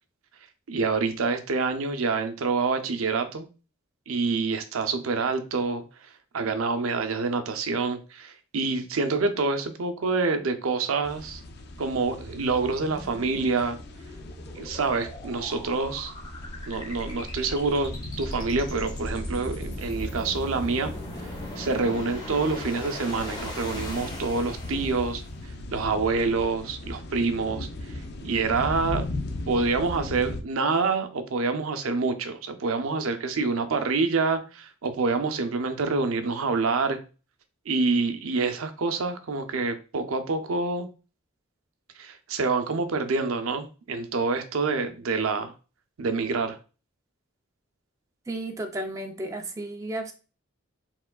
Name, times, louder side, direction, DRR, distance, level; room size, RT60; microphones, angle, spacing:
voice 1, 0.7-3.5 4.1-5.8 6.3-11.4 11.8-13.8 14.5-16.1 16.7-17.9 18.2-20.9 21.2-29.0 29.5-37.0 37.7-40.9 42.0-45.5 46.0-46.6, right 4 dB, 80° right, 0.6 m, -27 dB
sound 1, 11.0-30.4, left 2 dB, 50° left, 0.5 m, -38 dB
sound 2, 11.9-25.3, left 1 dB, 20° left, 1.0 m, -39 dB
voice 2, 48.3-50.1, right 1 dB, 15° right, 0.4 m, -33 dB
4.6 x 3.6 x 2.3 m
head